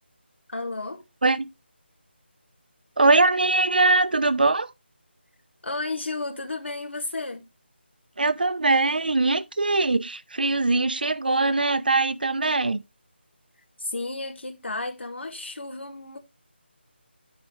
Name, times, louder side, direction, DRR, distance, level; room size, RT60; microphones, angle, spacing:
voice 1, 0.5-1.0 5.6-7.4 13.8-16.2, left 2 dB, 80° left, 2.3 m, -32 dB
voice 2, 3.0-4.7 8.2-12.8, right 3 dB, 50° right, 0.6 m, -21 dB
11.5 x 4.9 x 3.1 m
figure-of-eight pair, 180°, 6 cm